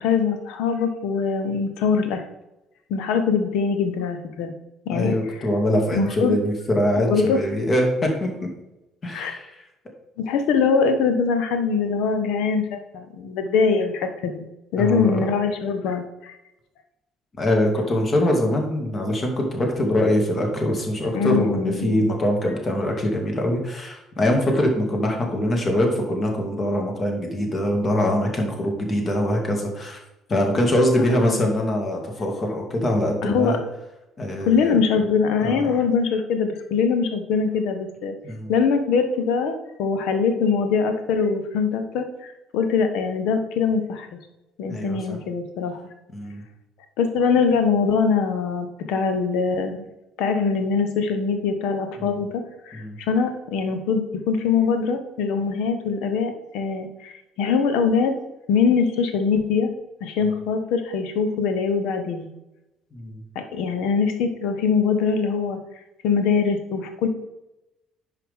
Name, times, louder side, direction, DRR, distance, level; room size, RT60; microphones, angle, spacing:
voice 1, 0.0-2.2 2.9-4.5 4.9-5.2 5.9-6.4 7.0-7.4 9.1-9.3 10.2-14.5 14.7-16.4 21.1-22.0 31.3-31.4 33.2-33.6 34.5-38.1 38.5-44.1 44.6-45.8 47.0-49.9 50.2-58.1 58.5-59.7 60.0-62.3 63.3-65.6 66.0-67.1, left 5 dB, 60° left, 8 dB, 1.1 m, -23 dB
voice 2, 4.9-8.5 9.0-9.5 14.8-15.2 17.4-30.0 30.3-33.6 34.2-34.8 35.4-35.8 38.2-38.5 44.7-45.2 46.1-46.4 52.0-52.1 52.7-52.9 62.9-63.2, left 1 dB, 35° left, 2 dB, 2.3 m, -23 dB
10.0 x 5.9 x 3.7 m, 0.94 s
figure-of-eight pair, 50°, 0 cm